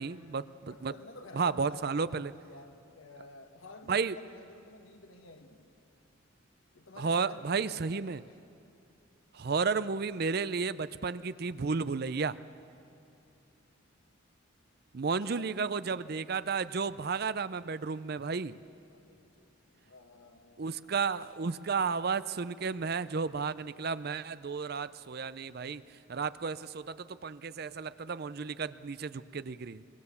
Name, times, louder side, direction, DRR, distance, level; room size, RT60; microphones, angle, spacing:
voice 1, 0.0-0.9 1.3-2.3 3.9-4.1 7.0-8.2 9.3-12.4 14.9-18.6 20.6-25.8 26.1-29.8, right 5 dB, 50° right, 15 dB, 0.5 m, -33 dB
voice 2, 0.7-5.7 6.7-8.4 15.2-15.5 18.9-20.9, left 3 dB, 85° left, 5 dB, 1.8 m, -52 dB
24.0 x 22.0 x 7.1 m, 2.6 s
head